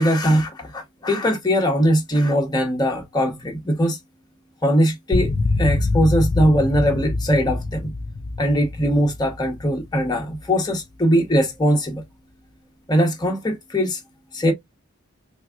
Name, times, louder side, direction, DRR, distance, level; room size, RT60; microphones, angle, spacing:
voice 1, 0.0-4.0 4.6-7.9 8.4-12.0 12.9-14.0 14.3-14.5, equal, 20° left, 1.1 m, -20 dB
sound 1, 5.1-10.5, left 2 dB, 45° left, 0.5 m, -25 dB
3.5 x 3.1 x 2.4 m
head